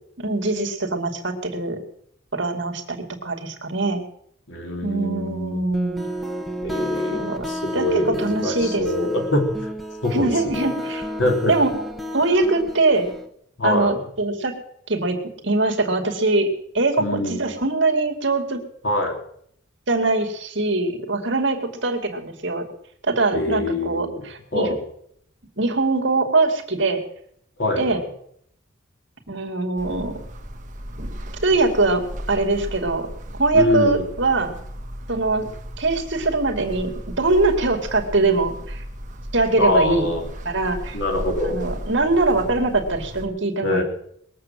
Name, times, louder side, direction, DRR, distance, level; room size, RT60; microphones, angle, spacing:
voice 1, 0.2-1.8 2.3-4.0 4.8-6.0 7.1-7.5 7.7-9.1 10.1-11.0 11.5-11.7 12.1-13.1 13.6-14.6 14.9-15.2 15.4-16.5 16.7-18.6 19.9-22.7 23.0-24.7 25.6-27.0 27.8-28.0 29.3-30.2 31.4-33.1 33.4-34.6 35.1-35.5 35.8-36.9 37.2-38.8 39.3-40.1 40.4-41.0 41.4-43.8, right 3 dB, 60° right, 4 dB, 2.4 m, -22 dB
voice 2, 4.5-5.6 6.6-9.5 10.0-10.7 11.2-11.5 13.6-14.0 17.0-17.4 18.8-19.1 23.3-24.2 24.5-24.8 27.6-28.1 33.5-34.1 39.6-40.2 40.9-41.6 43.6-43.8, left 1 dB, 60° left, 2 dB, 3.4 m, -24 dB
sound 1, 5.7-13.3, equal, ahead, 1.3 m, -31 dB
sound 2, 29.8-43.3, equal, 40° right, 1.5 m, -35 dB
21.0 x 7.6 x 7.6 m, 0.69 s
head